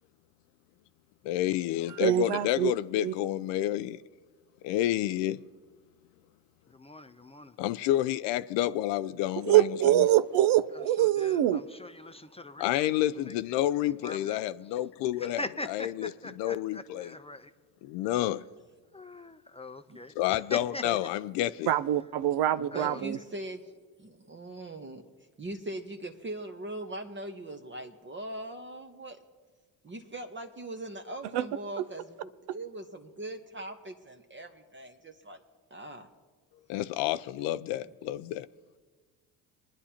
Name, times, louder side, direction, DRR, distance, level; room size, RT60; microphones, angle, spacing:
voice 1, 1.2-4.0 4.6-5.4 7.6-9.9 12.6-15.4 15.7-16.1 16.4-17.1 17.8-18.4 20.2-21.7 36.7-38.5, left 13 dB, 75° left, 0.5 m, -29 dB
voice 2, 2.0-2.7 3.0-3.1 9.4-11.6 21.7-23.2 31.3-31.4, right 13 dB, 60° right, 0.6 m, -24 dB
voice 3, 6.7-7.6 10.7-13.3 14.0-14.4 15.2-17.5 18.0-18.3 18.9-21.1 22.7-23.0, left 2 dB, 15° left, 0.6 m, -42 dB
voice 4, 22.6-23.7 24.0-25.0 25.4-29.2 29.8-35.4 35.7-36.1, right 1 dB, 25° right, 1.0 m, -41 dB
24.5 x 10.0 x 2.9 m
hypercardioid pair, 65°, 45 cm